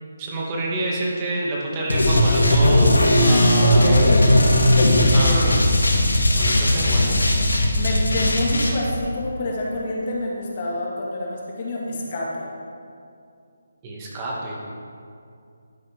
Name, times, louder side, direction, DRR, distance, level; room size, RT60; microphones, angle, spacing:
voice 1, 0.2-4.0 5.1-5.6 6.3-7.2 13.8-14.6, right 2 dB, 25° right, -4 dB, 2.1 m, -27 dB
sound 1, 1.9-8.7, left 1 dB, 85° left, 1.9 m, -17 dB
voice 2, 3.6-5.6 7.7-12.5, left 1 dB, 40° left, -3 dB, 2.1 m, -27 dB
12.0 x 9.4 x 3.7 m, 2.4 s
figure-of-eight pair, 155°, 0 cm